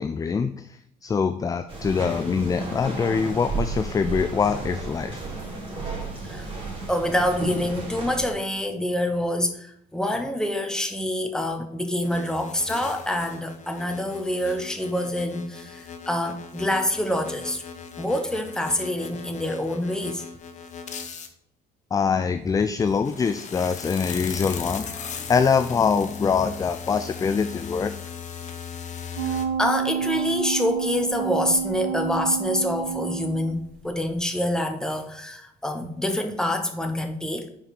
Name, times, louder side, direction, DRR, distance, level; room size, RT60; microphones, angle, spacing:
voice 1, 0.0-5.2 21.9-24.9 25.3-27.9, left 5 dB, 20° left, 9 dB, 0.3 m, -24 dB
sound 1, 1.7-8.3, right 3 dB, 35° right, 2.7 m, -33 dB
voice 2, 6.9-17.6 18.0-20.2 29.2-37.5, left 1 dB, 5° left, 5 dB, 0.9 m, -26 dB
sound 2, 12.0-21.3 22.8-29.5, left 7 dB, 45° left, 0.9 m, -38 dB
sound 3, 29.2-33.7 34.1-34.2, right 7 dB, 80° right, 1.2 m, -29 dB
5.1 x 4.7 x 5.7 m, 0.73 s
cardioid pair, 110°, 17 cm